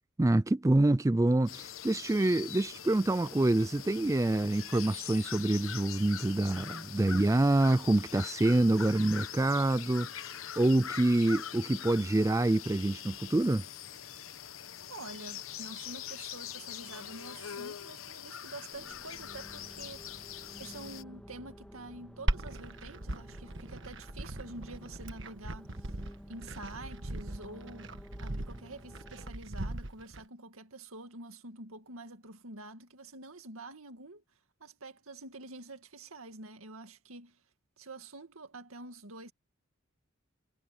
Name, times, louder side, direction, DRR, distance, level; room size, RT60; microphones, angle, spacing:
voice 1, 0.2-13.6, right 2 dB, 15° right, 0.3 m, -26 dB
sound 1, 1.5-21.0, left 9 dB, 80° left, 1.0 m, -43 dB
voice 2, 14.9-20.0 20.6-25.9 26.3-34.2 34.6-37.4 37.8-39.3, right 2 dB, 85° right, 2.2 m, -47 dB
sound 2, 18.7-29.3, equal, 5° left, 2.2 m, -52 dB
Glass, 22.3-30.2, right 1 dB, 60° right, 1.6 m, -38 dB
head